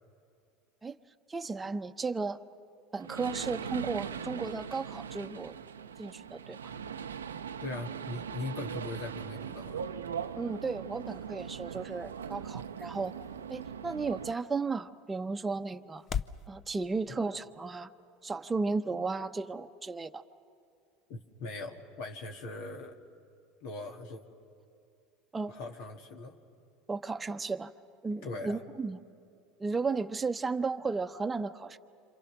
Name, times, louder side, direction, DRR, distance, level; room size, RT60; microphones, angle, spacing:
voice 1, 1.3-2.4 2.9-5.6 6.0-6.6 10.4-13.1 13.5-16.1 16.5-17.9 18.2-20.2 25.3-25.5 26.9-27.7 28.0-29.0 29.6-31.8, right 4 dB, 20° right, 7 dB, 0.9 m, -34 dB
sound 1, 3.0-14.3, right 7 dB, 90° right, 0.6 m, -40 dB
voice 2, 7.6-9.8 21.1-22.9 23.6-24.2 25.5-26.4 28.2-28.6, left 3 dB, 65° left, 2 dB, 1.8 m, -40 dB
sound 2, 10.2-16.5, left 8 dB, 40° left, 0.7 m, -44 dB
27.0 x 27.0 x 6.0 m, 2.5 s
hypercardioid pair, 80°, 0 cm